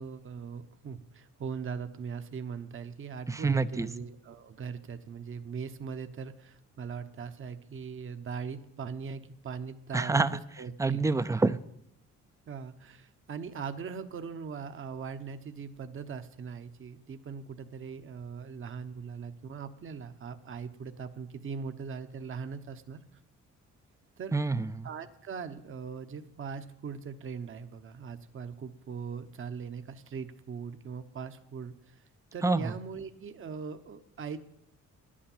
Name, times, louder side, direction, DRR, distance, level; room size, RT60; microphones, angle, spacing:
voice 1, 0.0-11.1 12.5-23.0 24.2-24.3 24.8-32.0 32.3-34.4, right 6 dB, 45° right, 9 dB, 0.9 m, -40 dB
voice 2, 3.3-3.9 9.9-10.4 10.8-11.6 24.3-24.9 32.4-32.6, right 3 dB, 10° right, 14 dB, 0.5 m, -27 dB
11.0 x 8.7 x 7.2 m, 0.76 s
cardioid pair, 90°, 30 cm